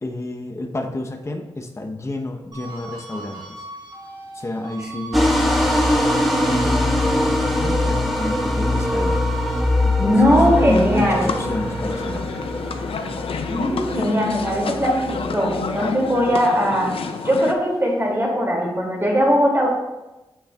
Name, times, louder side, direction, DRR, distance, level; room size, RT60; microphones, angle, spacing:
voice 1, 0.0-3.6 4.3-5.4 6.5-9.2 9.8-10.1 10.6-12.3, left 2 dB, 30° left, 3 dB, 0.7 m, -30 dB
sound 1, 2.5-15.1 15.5-17.2, right 1 dB, 45° right, 1.9 m, -39 dB
sound 2, 5.1-16.0, left 1 dB, ahead, 1.1 m, -22 dB
voice 2, 10.0-11.3 13.5-16.9 17.2-19.7, equal, 25° right, -2 dB, 2.2 m, -19 dB
sound 3, 10.3-17.5, left 5 dB, 65° left, 0.4 m, -29 dB
8.8 x 5.5 x 2.2 m, 1.0 s
cardioid pair, 50°, 10 cm